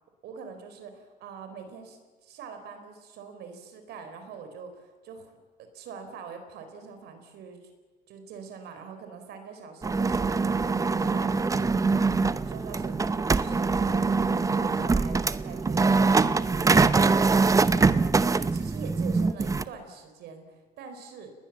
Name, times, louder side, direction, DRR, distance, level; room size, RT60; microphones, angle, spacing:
voice 1, 0.2-7.6 8.1-15.9 16.5-17.5 17.9-18.1 18.5-21.3, right 5 dB, 75° right, 7 dB, 4.4 m, -44 dB
sound 1, 9.8-19.6, right 4 dB, 20° right, 0.8 m, -23 dB
29.0 x 20.0 x 7.5 m, 1.3 s
cardioid pair, 110°, 17 cm